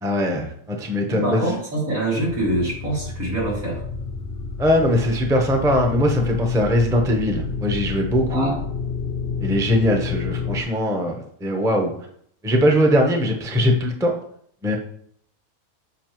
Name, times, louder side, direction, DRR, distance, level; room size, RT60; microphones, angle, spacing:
voice 1, 0.0-1.4 4.6-8.5 9.4-11.9 12.4-14.1 14.6-14.8, equal, 5° right, 2 dB, 0.6 m, -20 dB
voice 2, 1.1-3.8 8.3-8.6, right 1 dB, 80° right, -5 dB, 2.9 m, -25 dB
sound 1, 2.2-10.6, left 5 dB, 65° left, 0.9 m, -30 dB
7.1 x 5.0 x 3.0 m, 0.65 s
omnidirectional pair, 1.4 m